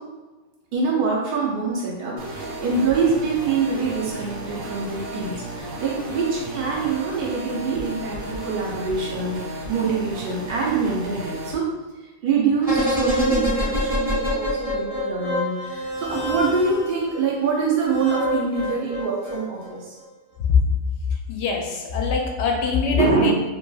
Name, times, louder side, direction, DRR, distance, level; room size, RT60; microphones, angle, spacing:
voice 1, 0.7-11.7 12.2-20.0 22.9-23.3, right 4 dB, 65° right, -4 dB, 0.5 m, -24 dB
sound 1, 2.2-11.5, right 1 dB, 85° right, 1.0 m, -34 dB
sound 2, 12.6-17.0 17.9-19.7 20.0-20.1, left 1 dB, 30° right, 0.9 m, -26 dB
voice 2, 21.3-23.3, left 6 dB, 65° left, 1 dB, 0.7 m, -22 dB
3.0 x 2.7 x 2.2 m, 1.2 s
omnidirectional pair, 1.4 m